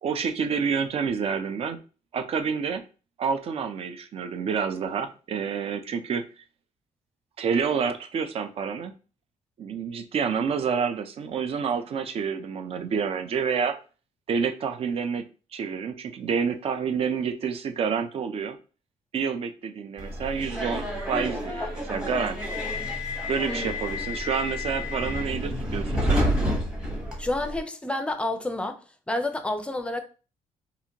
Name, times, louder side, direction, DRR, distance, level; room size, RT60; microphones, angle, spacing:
voice 1, 0.0-1.8 2.1-2.8 3.2-6.2 7.4-8.9 9.6-13.8 14.3-15.2 15.5-18.6 19.1-22.4 23.3-26.2, right 6 dB, 50° right, 0.5 m, -28 dB
Subway metro underground, 20.0-27.6, left 1 dB, 5° right, 1.1 m, -29 dB
voice 2, 27.2-28.8 29.1-30.0, left 2 dB, 10° left, 0.5 m, -29 dB
4.1 x 2.5 x 2.8 m
cardioid pair, 130°, 13 cm